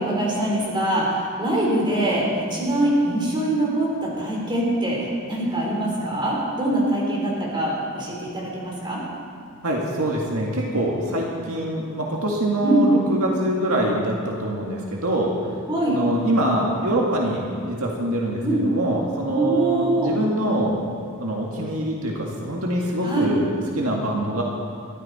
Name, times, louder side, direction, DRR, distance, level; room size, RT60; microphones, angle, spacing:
voice 1, 0.0-9.0 12.6-12.8 15.7-16.0 18.4-18.6 19.3-20.1 23.0-23.3, right 1 dB, 20° right, -3 dB, 4.2 m, -23 dB
voice 2, 9.6-15.3 15.9-20.8 21.2-24.4, right 1 dB, 70° right, -2 dB, 2.0 m, -24 dB
22.0 x 14.0 x 4.3 m, 2.2 s
head